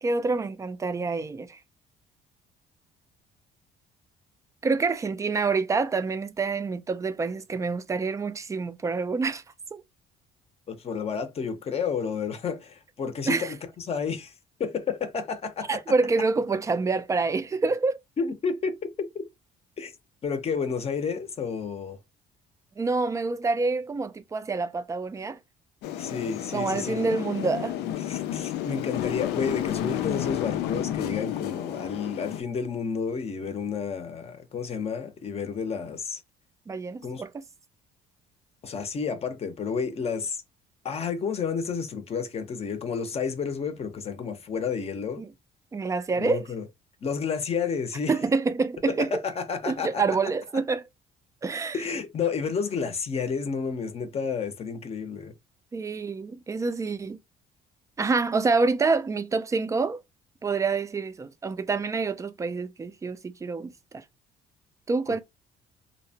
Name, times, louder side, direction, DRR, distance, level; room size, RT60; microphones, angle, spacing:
voice 1, 0.0-1.6 4.6-9.4 9.7-9.8 13.3-13.5 15.7-18.0 22.8-25.4 26.5-27.8 36.7-37.4 45.2-45.3 45.7-46.4 48.1-49.1 49.7-50.8 51.4-51.8 55.7-57.2 58.0-60.0 60.4-64.0 64.9-65.2, right 4 dB, 20° right, 0.3 m, -27 dB
voice 2, 10.7-14.3 14.6-15.8 18.2-18.9 19.1-19.2 19.8-19.9 20.2-22.0 26.0-27.1 28.0-36.2 37.0-37.2 38.6-40.4 40.8-45.2 46.2-46.6 47.0-48.1 49.1-50.0 51.7-55.3, left 6 dB, 35° left, 0.6 m, -31 dB
sound 1, 25.8-32.4, left 12 dB, 80° left, 0.4 m, -31 dB
2.7 x 2.1 x 2.7 m
cardioid pair, 110°, 17 cm